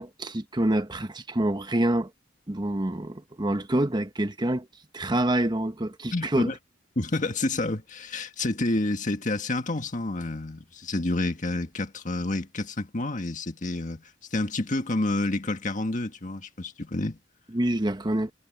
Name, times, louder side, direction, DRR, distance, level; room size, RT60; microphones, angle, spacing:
voice 1, 0.0-2.1 2.5-4.7 4.9-6.5 17.5-18.3, right 1 dB, 25° right, 1.0 m, -26 dB
voice 2, 6.1-6.6 6.9-17.2, left 2 dB, 40° left, 1.7 m, -29 dB
head